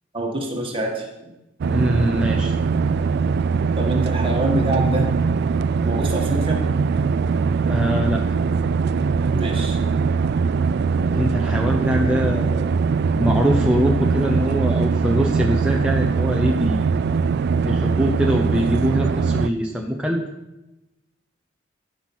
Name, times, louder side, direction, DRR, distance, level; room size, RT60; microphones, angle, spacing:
voice 1, 0.1-1.3 3.8-5.1 5.8-6.9 9.3-9.8, right 1 dB, 30° right, 0 dB, 1.9 m, -26 dB
sound 1, 1.6-19.5, right 5 dB, 55° right, 0.3 m, -21 dB
voice 2, 1.7-2.5 7.7-8.2 11.1-12.7 13.1-16.9 17.6-20.2, equal, 5° right, -1 dB, 0.8 m, -23 dB
13.0 x 5.7 x 6.2 m, 1.0 s
head